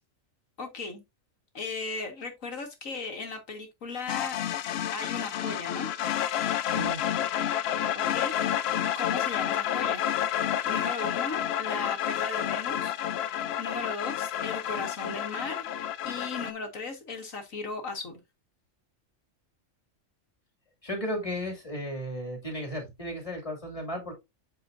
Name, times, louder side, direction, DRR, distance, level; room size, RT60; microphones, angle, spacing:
voice 1, 0.6-1.0 1.5-4.4 4.9-5.9 7.9-8.3 8.9-10.1 10.6-12.9 13.6-15.7 16.0-18.2, left 4 dB, 85° left, 2.1 m, -36 dB
sound 1, 4.1-16.5, left 10 dB, 65° left, 0.7 m, -30 dB
voice 2, 6.7-7.0 20.8-24.1, equal, 25° left, 2.7 m, -34 dB
8.1 x 5.7 x 2.6 m
omnidirectional pair, 1.4 m